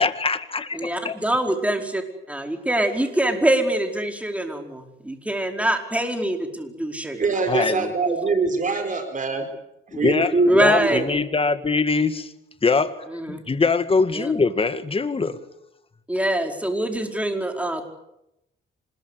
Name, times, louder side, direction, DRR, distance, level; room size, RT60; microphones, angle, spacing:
voice 1, 0.0-1.1 7.5-7.9 9.9-12.3 12.6-15.4, left 4 dB, 30° left, 11 dB, 2.0 m, -23 dB
voice 2, 0.7-2.0 2.3-7.3 10.5-11.0 13.1-13.4 14.1-14.3 16.1-17.8, right 1 dB, 5° right, 4 dB, 4.8 m, -24 dB
voice 3, 7.1-9.5 9.9-11.0, right 3 dB, 40° right, 6 dB, 4.6 m, -23 dB
26.0 x 21.5 x 8.4 m, 0.85 s
cardioid pair, 90°, 20 cm